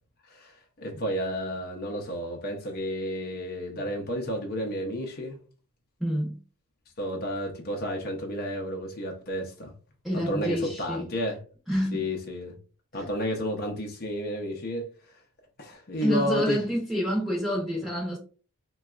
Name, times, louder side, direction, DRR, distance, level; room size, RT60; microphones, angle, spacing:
voice 1, 0.3-5.4 7.0-9.7 10.1-11.4 11.9-12.6 12.9-15.2 15.6-16.6, equal, 45° left, 0.6 m, -31 dB
voice 2, 6.0-6.4 10.0-11.1 11.7-12.0 12.9-13.0 16.0-18.2, equal, ahead, 0.8 m, -28 dB
3.9 x 2.3 x 2.3 m
head